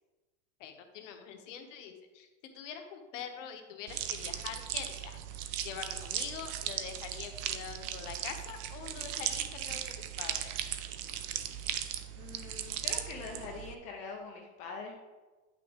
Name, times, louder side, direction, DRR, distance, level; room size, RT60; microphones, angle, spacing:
voice 1, 0.6-2.3 2.5-5.2 5.6-10.6, left 8 dB, 75° left, 5 dB, 1.1 m, -44 dB
sound 1, 3.9-13.7, right 11 dB, 45° right, 0.5 m, -37 dB
voice 2, 12.1-15.0, left 4 dB, 20° left, 1 dB, 0.4 m, -43 dB
9.0 x 5.9 x 3.6 m, 1.2 s
supercardioid pair, 180°, 38 cm